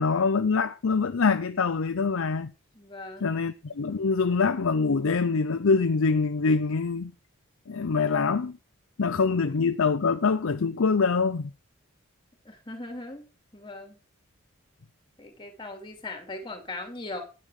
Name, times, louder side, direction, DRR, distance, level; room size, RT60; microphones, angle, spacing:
voice 1, 0.0-2.5 3.2-7.1 7.7-8.6 9.0-11.5, left 4 dB, 70° left, 0.6 m, -24 dB
voice 2, 2.7-3.3 12.4-13.3 13.5-14.0 15.2-17.2, left 2 dB, 25° left, 2.5 m, -39 dB
10.0 x 8.9 x 4.8 m
head